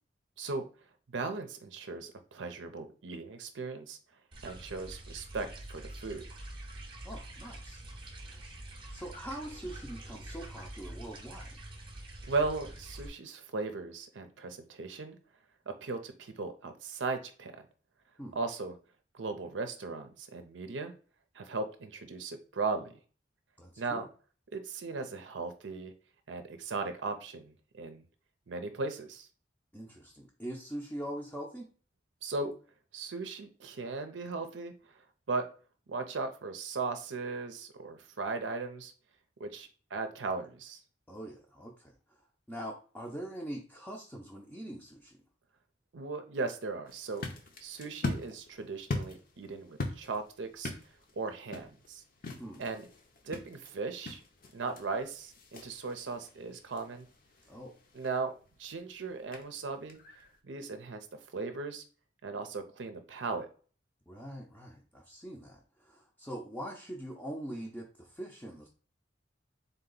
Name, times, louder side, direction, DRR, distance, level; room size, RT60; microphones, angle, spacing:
voice 1, 1.1-4.0 4.4-6.2 12.3-15.2 15.7-17.5 18.4-18.7 19.1-20.9 21.3-22.9 23.8-24.1 24.5-25.9 26.3-28.0 28.5-29.3 32.2-32.5 32.9-34.7 35.3-35.5 35.9-38.9 39.4-40.8 45.9-47.3 47.6-50.7 51.2-52.0 52.6-52.9 53.2-54.2 54.5-57.1 57.9-58.3 58.6-60.0 60.4-61.1 61.3-61.8 62.2-63.5, right 3 dB, 80° right, 7 dB, 0.6 m, -37 dB
sound 1, 4.3-13.1, right 1 dB, 25° right, 0.7 m, -46 dB
voice 2, 7.0-7.8 8.3-8.5 8.9-11.5 18.2-18.4 23.6-24.0 29.7-31.7 41.1-42.2 42.5-45.2 52.4-52.6 57.5-57.8 64.1-68.7, right 1 dB, 10° left, -2 dB, 0.5 m, -43 dB
sound 2, 46.9-60.4, left 2 dB, 50° left, 0.7 m, -43 dB
3.9 x 2.8 x 3.9 m, 0.39 s
head